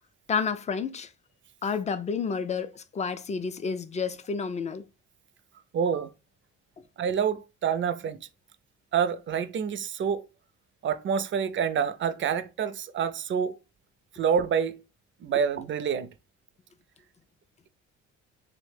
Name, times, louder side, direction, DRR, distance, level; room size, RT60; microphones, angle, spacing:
voice 1, 0.3-1.1 1.6-4.9, left 5 dB, 25° left, 0.3 m, -30 dB
voice 2, 5.7-6.1 7.0-8.2 8.9-10.2 10.8-13.6 14.1-14.8 15.2-16.1, right 7 dB, 40° right, 0.4 m, -27 dB
3.1 x 2.1 x 3.2 m
cardioid pair, 90°, 30 cm